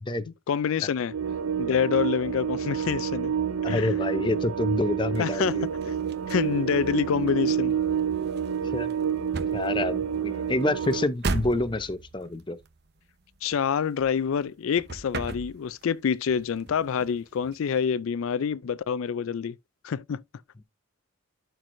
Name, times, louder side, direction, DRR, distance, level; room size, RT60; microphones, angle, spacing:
voice 1, 0.5-1.1 1.6-3.3 3.7-3.9 5.2-5.6 6.3-7.7 13.4-19.5 19.8-20.2, left 7 dB, 80° left, 0.4 m, -27 dB
sound 1, 1.1-11.1, right 8 dB, 85° right, 0.5 m, -28 dB
voice 2, 3.6-5.7 8.7-8.9 9.5-12.6, left 2 dB, 20° left, 0.6 m, -27 dB
sound 2, 5.1-14.5 14.7-16.0 16.3-17.8, right 3 dB, 50° right, 0.9 m, -38 dB
12.0 x 4.6 x 2.6 m
head